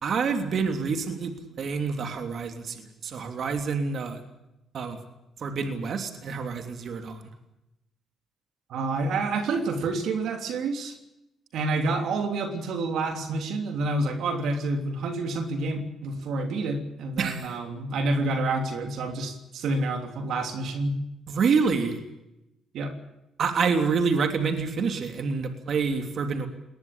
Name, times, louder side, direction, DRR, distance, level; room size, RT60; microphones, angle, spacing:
voice 1, 0.0-4.2 4.7-5.0 5.4-7.2 17.2-17.6 21.3-22.0 23.4-26.5, right 5 dB, 60° right, 6 dB, 3.1 m, -27 dB
voice 2, 8.7-11.0 11.5-21.0 22.7-23.0, right 2 dB, 75° right, 6 dB, 3.2 m, -28 dB
20.5 x 20.0 x 8.7 m, 0.88 s
cardioid pair, 90°, 0 cm